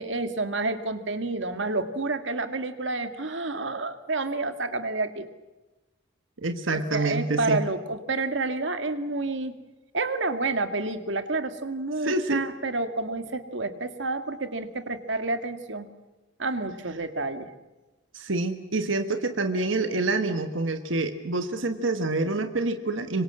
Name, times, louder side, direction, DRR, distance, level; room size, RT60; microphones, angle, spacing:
voice 1, 0.0-5.3 6.7-9.5 9.9-15.9 16.4-17.5, right 3 dB, 70° right, 9 dB, 2.0 m, -29 dB
voice 2, 6.4-7.6 12.0-12.5 18.1-23.2, right 2 dB, 90° right, 7 dB, 1.5 m, -27 dB
26.0 x 24.0 x 7.7 m, 1.1 s
head